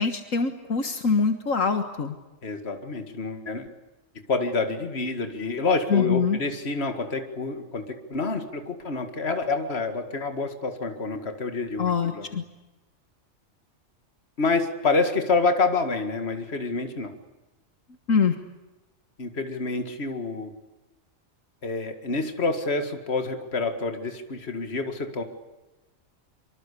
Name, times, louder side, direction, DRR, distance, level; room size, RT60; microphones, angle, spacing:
voice 1, 0.0-2.1 5.9-6.4 11.8-12.4 18.1-18.4, left 5 dB, 75° left, 8 dB, 1.9 m, -24 dB
voice 2, 2.4-3.7 4.3-12.4 14.4-17.1 19.2-20.5 21.6-25.2, left 3 dB, 50° left, 7 dB, 2.3 m, -27 dB
25.0 x 25.0 x 8.4 m, 1.1 s
omnidirectional pair, 1.4 m